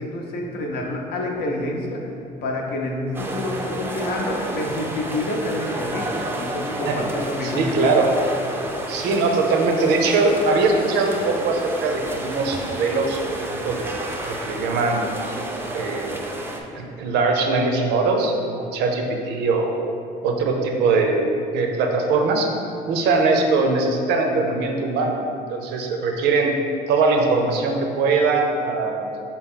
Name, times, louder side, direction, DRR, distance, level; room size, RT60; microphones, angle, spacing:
voice 1, 0.0-2.1 2.4-8.0, left 1 dB, 70° left, 0 dB, 0.7 m, -28 dB
sound 1, 3.1-16.6, right 1 dB, 15° right, 0.4 m, -31 dB
voice 2, 7.4-8.1 8.9-13.9 14.4-15.1 15.7-16.2 16.7-19.8 20.2-22.5 22.9-25.2 25.5-26.5 26.9-29.0, right 3 dB, 80° right, 3 dB, 0.5 m, -21 dB
4.0 x 2.9 x 3.7 m, 2.5 s
cardioid pair, 110°, 17 cm